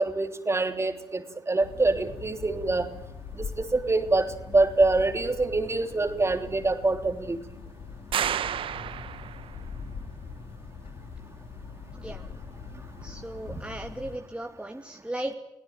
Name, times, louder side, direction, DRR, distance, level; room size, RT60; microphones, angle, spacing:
voice 1, 0.0-2.9 3.3-7.4, right 3 dB, 30° right, 7 dB, 3.3 m, -25 dB
sound 1, 1.6-14.2, left 5 dB, 75° left, 3.7 m, -42 dB
sound 2, 8.1-9.6, right 9 dB, 70° right, 1.0 m, -30 dB
voice 2, 13.0-15.3, right 1 dB, 10° right, 3 dB, 2.6 m, -36 dB
24.0 x 17.5 x 9.1 m, 0.91 s
supercardioid pair, 50°, 9 cm